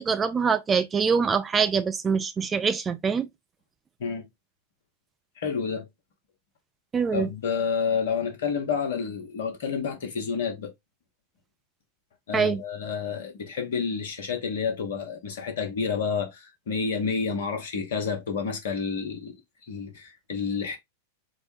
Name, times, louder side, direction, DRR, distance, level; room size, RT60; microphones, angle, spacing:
voice 1, 0.0-3.3 6.9-7.3 12.3-12.6, right 6 dB, 20° right, 0.4 m, -24 dB
voice 2, 5.4-5.9 7.1-10.7 12.3-19.3 19.7-20.8, left 6 dB, 60° left, 1.1 m, -29 dB
4.3 x 2.1 x 3.1 m
figure-of-eight pair, 90°, 0 cm